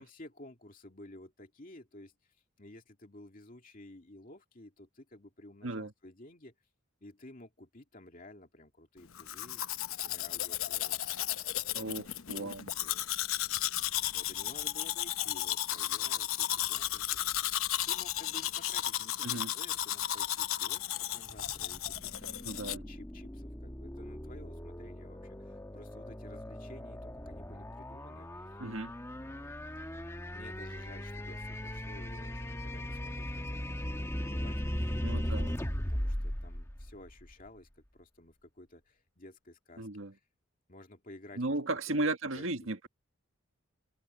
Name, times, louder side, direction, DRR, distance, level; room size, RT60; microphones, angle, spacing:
voice 1, 0.0-6.5 7.0-13.1 14.1-17.2 17.8-20.9 21.1-28.6 29.1-29.6 30.3-35.3 35.9-40.3 40.7-41.6 41.9-42.5, left 1 dB, 40° left, 2.5 m, -53 dB
Domestic sounds home sounds, 9.2-22.8, left 12 dB, 85° left, 0.8 m, -34 dB
voice 2, 11.7-12.7 19.2-19.5 22.4-22.9 28.6-28.9 35.0-35.5 39.8-40.1 41.4-42.9, right 2 dB, 75° right, 1.8 m, -35 dB
sound 1, 21.3-37.5, equal, 15° left, 1.3 m, -38 dB
head